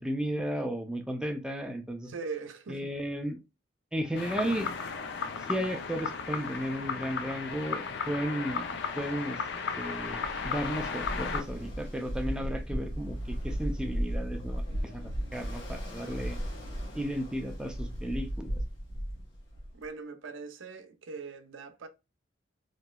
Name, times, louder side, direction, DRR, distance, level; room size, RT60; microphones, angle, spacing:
voice 1, 0.0-2.1 2.7-3.4 3.9-4.7 5.5-8.7 9.0-9.4 9.8-16.4 16.9-18.6, equal, 5° right, 0.4 m, -34 dB
voice 2, 2.1-2.9 19.7-21.9, right 4 dB, 85° right, 0.5 m, -41 dB
sound 1, 4.1-11.4, left 5 dB, 65° left, 0.5 m, -35 dB
Ocean, 10.0-19.8, equal, 80° left, 1.1 m, -36 dB
3.0 x 2.8 x 2.2 m
head